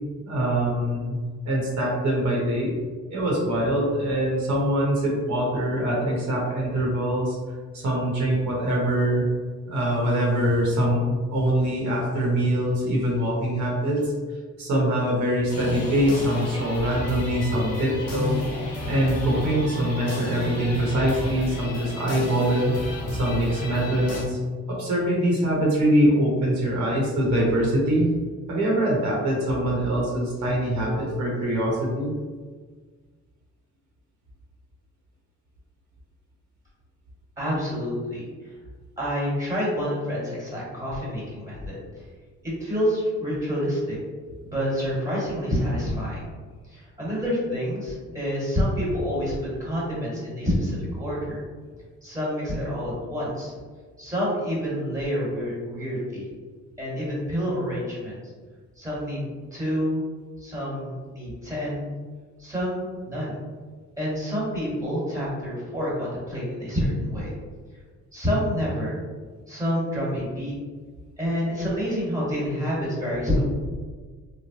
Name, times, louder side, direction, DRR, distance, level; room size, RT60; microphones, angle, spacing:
voice 1, 0.3-1.2 1.4-2.7 3.1-7.4 7.7-9.3 9.7-14.1 14.6-18.5 18.9-22.7 23.1-24.4 24.7-28.1 28.5-32.1, right 1 dB, 75° right, -4 dB, 1.0 m, -23 dB
sound 1, 15.5-24.2, left 1 dB, 55° left, 0.9 m, -32 dB
voice 2, 37.4-38.3 39.0-42.0 42.4-44.0 44.4-46.2 46.7-51.4 52.0-53.5 54.0-56.3 56.8-58.2 58.8-59.2 59.5-60.0 60.4-61.9 62.4-63.4 64.0-67.3 68.1-69.0 69.5-70.5 71.2-73.4, equal, 10° right, -6 dB, 1.4 m, -28 dB
3.1 x 2.1 x 2.9 m, 1.5 s
cardioid pair, 90°, 30 cm